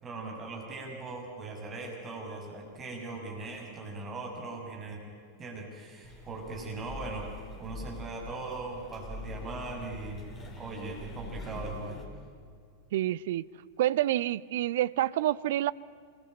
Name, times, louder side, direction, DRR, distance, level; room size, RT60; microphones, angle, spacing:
voice 1, 0.0-5.0 5.4-7.3 7.6-10.3 10.5-12.0, right 3 dB, 25° right, 0 dB, 6.8 m, -39 dB
sound 1, 6.0-12.1, left 2 dB, 20° left, 4.4 m, -43 dB
voice 2, 12.9-13.4 13.8-15.7, right 14 dB, 55° right, 18 dB, 0.6 m, -28 dB
27.0 x 22.5 x 9.1 m, 2.1 s
figure-of-eight pair, 90°, 0 cm